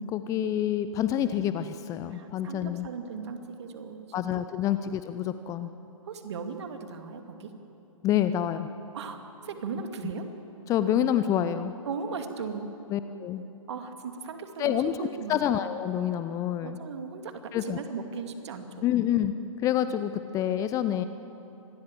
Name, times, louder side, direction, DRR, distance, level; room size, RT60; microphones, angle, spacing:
voice 1, 0.0-2.9 4.1-5.7 8.0-8.7 10.7-11.7 12.9-13.4 14.6-16.8 17.5-17.8 18.8-19.3 19.6-21.0, left 10 dB, 20° left, 11 dB, 0.6 m, -27 dB
voice 2, 2.1-4.4 4.7-4.8 6.0-7.5 8.9-10.3 11.9-12.7 13.7-14.7 15.0-15.4 16.6-18.9, right 5 dB, 50° right, 6 dB, 2.4 m, -37 dB
26.0 x 20.5 x 7.6 m, 3.0 s
figure-of-eight pair, 120°, 18 cm